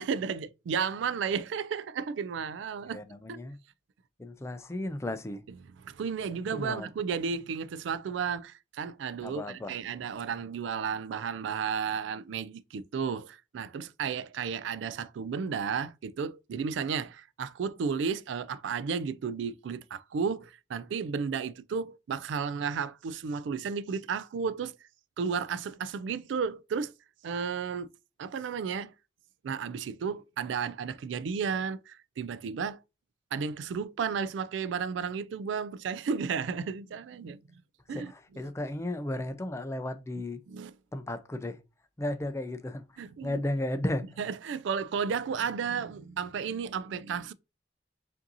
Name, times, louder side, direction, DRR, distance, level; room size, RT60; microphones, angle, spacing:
voice 1, 0.0-3.0 3.3-3.4 5.8-24.8 25.2-26.9 27.2-27.9 28.2-28.9 29.4-32.8 33.3-37.4 37.9-38.4 40.5-40.7 43.0-43.4 44.2-47.3, right 6 dB, 75° right, 0.3 m, -33 dB
voice 2, 2.9-3.6 4.2-5.4 6.3-6.9 9.2-9.8 37.9-40.4 40.9-41.6 42.0-42.8 43.2-44.0, left 1 dB, 15° left, 0.3 m, -34 dB
5.1 x 2.6 x 2.6 m
head